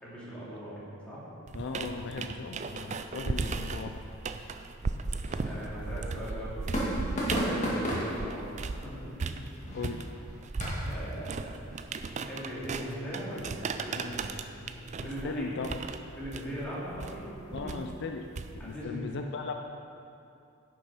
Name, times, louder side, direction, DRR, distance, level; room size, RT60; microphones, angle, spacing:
voice 1, 0.0-1.2 5.4-9.3 10.8-11.5 11.8-15.5 16.2-17.7 18.6-19.1, equal, 5° left, -9 dB, 2.6 m, -40 dB
voice 2, 1.5-4.0 4.5-4.6 9.7-10.1 15.2-15.8 17.5-18.3 18.5-19.5, left 4 dB, 55° left, 4 dB, 0.4 m, -37 dB
sound 1, 1.5-8.9 9.2-18.8, right 4 dB, 35° right, 0.4 m, -36 dB
sound 2, 3.8-10.9, equal, 35° left, 2.1 m, -36 dB
10.5 x 6.3 x 5.5 m, 2.6 s
head